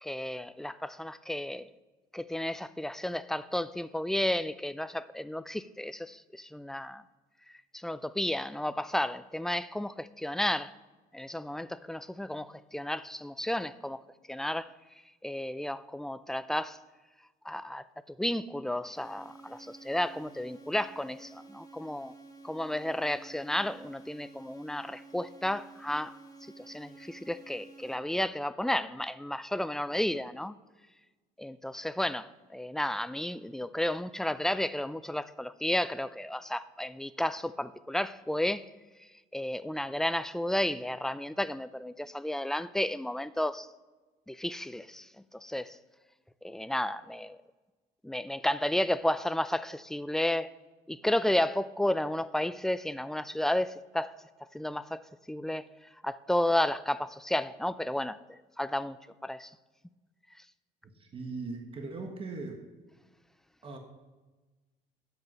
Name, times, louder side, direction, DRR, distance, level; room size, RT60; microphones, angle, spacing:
voice 1, 0.0-1.7 2.1-7.0 7.7-10.7 11.1-14.0 14.3-14.7 15.2-16.8 17.4-22.1 22.4-26.2 26.6-30.5 31.4-38.7 39.3-43.7 44.3-45.1 45.3-45.8 46.4-47.4 48.0-50.5 50.9-54.1 54.5-55.0 55.3-55.7 56.0-59.0 59.2-59.5, left 1 dB, 5° left, 0.4 m, -32 dB
sound 1, 18.9-27.9, right 3 dB, 20° left, 1.6 m, -52 dB
voice 2, 60.8-62.6 63.6-63.8, right 3 dB, 35° right, 1.5 m, -39 dB
10.5 x 8.0 x 5.5 m
cardioid pair, 110°, 17 cm